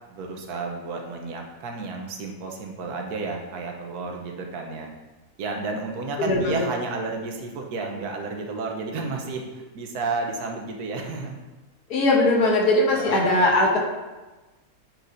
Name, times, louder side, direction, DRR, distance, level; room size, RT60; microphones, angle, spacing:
voice 1, 0.1-4.9 5.4-11.4 12.4-13.4, right 3 dB, 80° right, 2 dB, 1.4 m, -32 dB
voice 2, 6.2-6.6 11.9-13.8, left 2 dB, 80° left, 0 dB, 1.6 m, -20 dB
8.9 x 4.8 x 2.6 m, 1.2 s
omnidirectional pair, 1.7 m